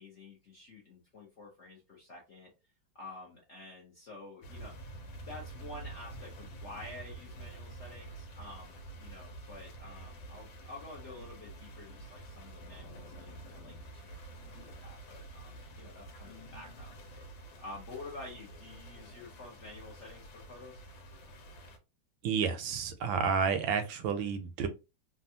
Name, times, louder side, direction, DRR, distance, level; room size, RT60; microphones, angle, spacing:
voice 1, 0.0-2.5 2.9-4.9 5.3-20.8, left 2 dB, 55° left, 0.8 m, -49 dB
sound 1, 4.4-21.8, right 2 dB, 80° left, 1.5 m, -48 dB
voice 2, 22.2-24.7, right 6 dB, 85° right, 1.4 m, -30 dB
3.4 x 2.2 x 2.7 m
omnidirectional pair, 2.1 m